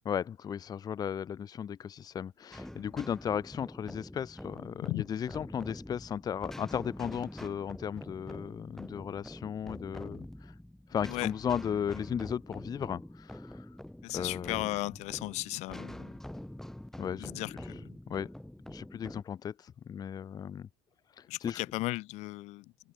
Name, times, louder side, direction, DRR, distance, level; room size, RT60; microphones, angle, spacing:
voice 1, 0.0-10.5 10.9-13.7 14.1-14.7 17.0-17.6 18.1-18.3 18.7-20.7 21.2-21.6, left 8 dB, 35° left, 1.0 m, -36 dB
sound 1, 2.5-19.2, left 1 dB, 5° left, 1.0 m, -45 dB
voice 2, 14.0-16.1 17.2-18.0 21.3-22.7, left 20 dB, 75° left, 2.2 m, -36 dB
cardioid pair, 130°, 12 cm